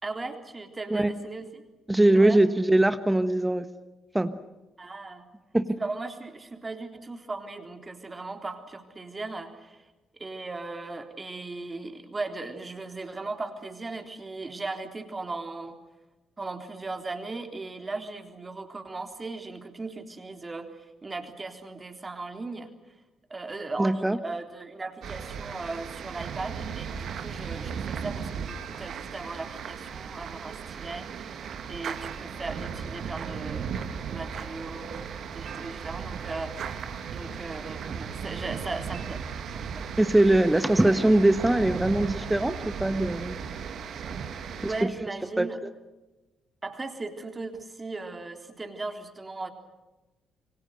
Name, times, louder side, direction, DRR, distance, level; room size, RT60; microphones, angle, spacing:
voice 1, 0.0-1.6 2.1-2.4 4.8-5.3 5.8-9.8 10.2-15.8 16.4-22.7 23.3-31.3 31.7-33.8 34.1-39.2 39.5-39.9 44.1-45.6 46.6-49.5, right 3 dB, 30° right, 5 dB, 3.7 m, -37 dB
voice 2, 1.9-3.6 4.1-4.4 5.5-5.7 23.8-24.2 40.0-42.5 42.8-43.4 44.8-44.9 45.4-45.5, right 1 dB, 10° right, 11 dB, 1.4 m, -21 dB
sound 1, 25.0-44.8, right 7 dB, 60° right, 2.2 m, -36 dB
27.5 x 24.0 x 6.5 m, 1.1 s
hypercardioid pair, 45°, 0 cm